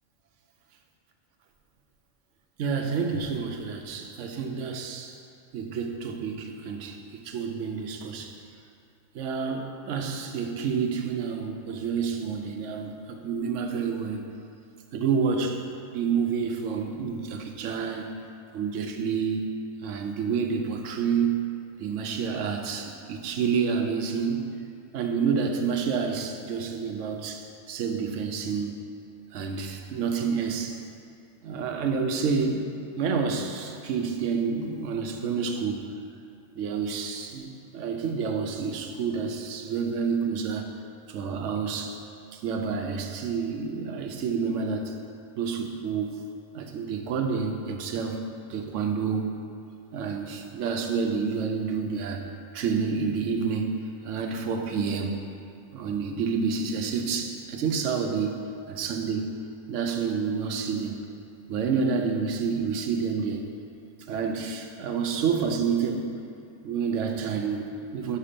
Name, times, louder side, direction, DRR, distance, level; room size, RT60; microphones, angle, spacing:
voice 1, 2.6-5.2 5.5-7.0 7.2-8.3 9.1-14.3 14.9-15.6 15.9-18.1 18.5-19.4 19.8-21.4 21.8-24.4 24.9-28.8 29.3-30.8 31.4-32.6 33.0-35.9 36.6-40.7 41.1-42.0 42.3-45.0 45.4-46.2 46.5-49.3 49.9-52.2 52.5-53.8 54.0-55.1 55.7-58.4 58.7-59.3 59.7-61.0 61.5-63.4 64.1-66.1 66.6-68.2, right 5 dB, 70° right, 4 dB, 1.0 m, -29 dB
5.7 x 5.6 x 5.1 m, 2.4 s
omnidirectional pair, 1.4 m